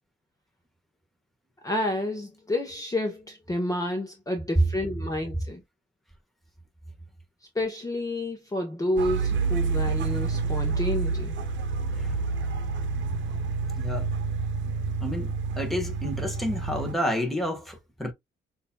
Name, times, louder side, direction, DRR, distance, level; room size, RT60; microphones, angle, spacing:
voice 1, 1.6-5.6 7.5-11.3, left 1 dB, 15° left, 1.1 m, -29 dB
sound 1, 9.0-16.9, right 4 dB, 70° right, 0.9 m, -28 dB
voice 2, 13.7-14.1 15.0-18.1, left 1 dB, ahead, 1.4 m, -30 dB
6.5 x 2.8 x 2.3 m
cardioid pair, 90°, 20 cm